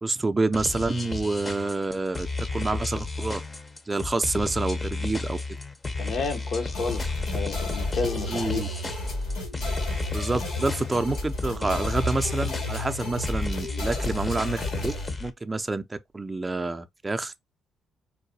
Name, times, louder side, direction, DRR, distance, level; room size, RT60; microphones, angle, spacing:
voice 1, 0.0-2.3 2.5-3.4 3.9-5.4 8.3-8.7 10.1-14.9 15.2-17.3, right 3 dB, 20° right, 0.4 m, -28 dB
sound 1, 0.5-15.3, left 3 dB, 25° left, 0.6 m, -32 dB
voice 2, 6.0-8.6, left 4 dB, 65° left, 0.8 m, -31 dB
sound 2, 6.7-15.1, left 2 dB, 90° left, 2.2 m, -32 dB
4.6 x 2.2 x 2.7 m
cardioid pair, 90°, 0 cm